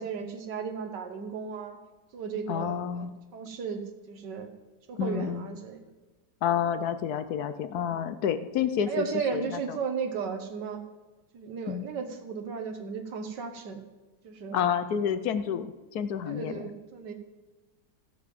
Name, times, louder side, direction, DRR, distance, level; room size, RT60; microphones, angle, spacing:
voice 1, 0.0-1.8 2.1-3.8 4.1-4.5 4.9-5.8 7.9-8.0 8.9-10.8 11.3-13.8 14.2-14.6 15.5-15.6 16.3-17.1, right 6 dB, 85° right, 5 dB, 1.8 m, -35 dB
voice 2, 2.5-3.1 5.0-5.5 6.4-9.0 9.3-9.8 11.7-11.9 14.5-16.7, left 8 dB, 70° left, 11 dB, 1.2 m, -29 dB
15.5 x 5.4 x 7.6 m, 1.2 s
omnidirectional pair, 1.8 m